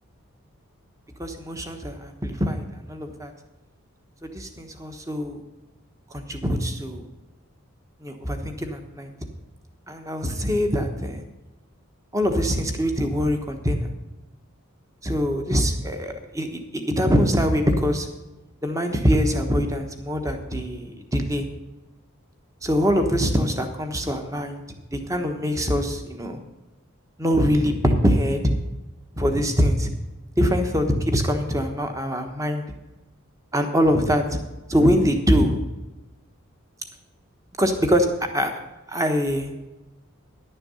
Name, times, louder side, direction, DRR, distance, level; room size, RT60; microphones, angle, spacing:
voice 1, 1.2-3.3 4.2-5.4 6.1-7.0 8.0-9.1 9.9-11.2 12.1-13.9 15.0-18.1 18.6-21.4 22.6-24.6 24.9-26.4 27.2-28.5 29.2-29.9 30.4-32.6 33.5-34.4 34.7-35.6 37.6-38.5 38.9-39.5, equal, 15° right, 6 dB, 1.1 m, -23 dB
11.0 x 6.8 x 7.0 m, 1.1 s
head